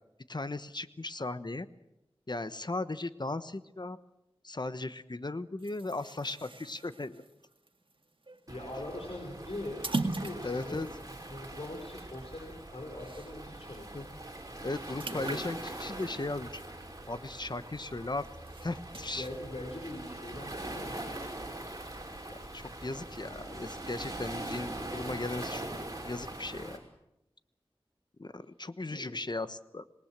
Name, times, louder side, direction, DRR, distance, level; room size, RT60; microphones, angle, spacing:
voice 1, 0.3-1.7 2.3-4.0 4.4-7.2 10.4-10.9 13.9-14.1 14.6-16.6 17.1-18.3 18.6-19.3 22.3-25.7 26.0-26.8 28.2-29.8, left 2 dB, 45° left, 12 dB, 1.2 m, -37 dB
sound 1, 5.6-13.6 14.0-14.1 14.4-17.4 17.8-19.4, right 3 dB, 60° right, 2.1 m, -41 dB
voice 2, 8.5-13.9 15.1-15.4 19.1-21.3 28.8-29.1, left 1 dB, 80° left, 1 dB, 5.5 m, -42 dB
Waves surf, 8.5-26.8, right 1 dB, 35° right, 5.7 m, -42 dB
26.5 x 20.0 x 7.6 m, 0.90 s
wide cardioid pair, 60°, 10 cm